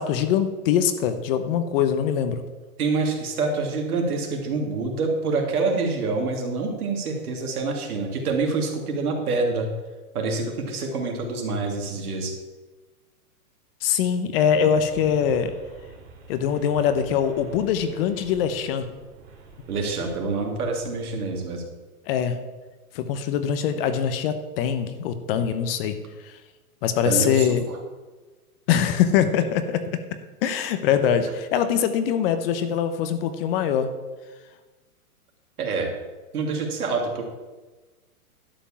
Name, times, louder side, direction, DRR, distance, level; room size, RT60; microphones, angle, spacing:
voice 1, 0.0-2.4 13.8-15.5 16.3-18.9 22.1-22.4 22.9-26.0 26.2-26.3 26.8-27.6 28.7-30.0 30.4-33.9, left 8 dB, 40° left, 10 dB, 1.0 m, -23 dB
voice 2, 2.8-9.7 10.1-12.3 19.7-21.6 27.0-27.8 35.6-35.9 36.3-37.2, right 3 dB, 75° right, 1 dB, 2.8 m, -26 dB
sound 1, 14.7-21.6, right 3 dB, 30° right, 3.1 m, -47 dB
11.5 x 5.2 x 7.3 m, 1.2 s
hypercardioid pair, 135°, 45 cm